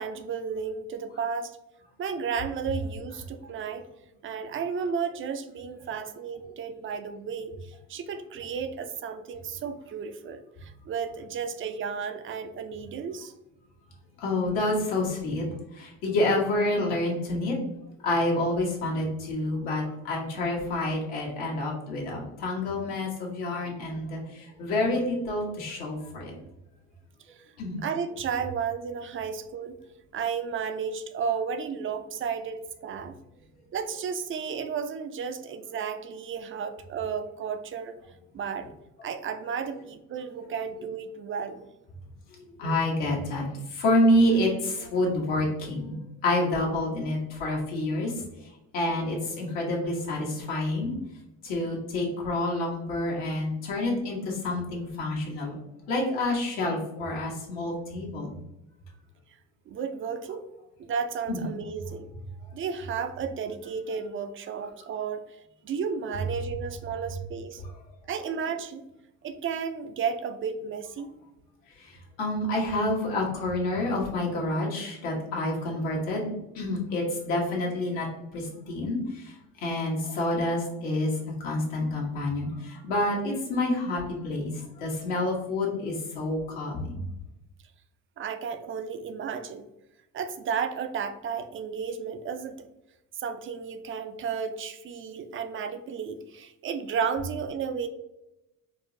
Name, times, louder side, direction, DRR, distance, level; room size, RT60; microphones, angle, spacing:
voice 1, 0.0-1.6 2.0-3.8 4.2-13.3 23.7-23.8 26.4-26.5 27.3-27.4 27.8-29.8 30.1-33.1 33.7-38.0 38.3-38.7 39.0-41.6 59.7-60.4 60.8-62.1 62.5-67.6 68.1-68.8 69.2-71.1 88.2-89.6 90.1-92.7 93.1-97.9, right 6 dB, 30° right, 8 dB, 0.4 m, -33 dB
voice 2, 14.2-15.5 15.7-17.6 18.0-26.3 27.6-27.8 39.0-39.1 42.6-46.0 46.2-48.5 48.7-50.9 51.4-55.6 55.9-58.3 61.3-61.5 71.8-78.1 78.3-79.3 79.6-81.2 81.4-87.0, left 1 dB, 75° left, -2 dB, 1.2 m, -28 dB
4.5 x 2.0 x 2.6 m, 0.90 s
hypercardioid pair, 70°, 43 cm